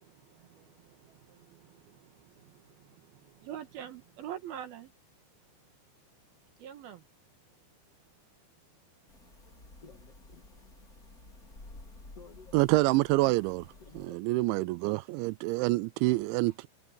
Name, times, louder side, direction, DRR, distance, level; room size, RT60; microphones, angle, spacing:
voice 1, 0.0-4.9 6.6-7.1 9.1-9.2, right 10 dB, 65° right, 2.9 m, -46 dB
sound 1, 9.1-14.1, left 2 dB, 20° left, 4.0 m, -52 dB
voice 2, 9.8-10.7 12.1-12.6 13.8-14.3 14.6-14.7, left 5 dB, 40° left, 2.7 m, -53 dB
voice 3, 12.5-13.7 14.0-16.7, right 21 dB, 85° right, 2.8 m, -27 dB
omnidirectional pair, 5.3 m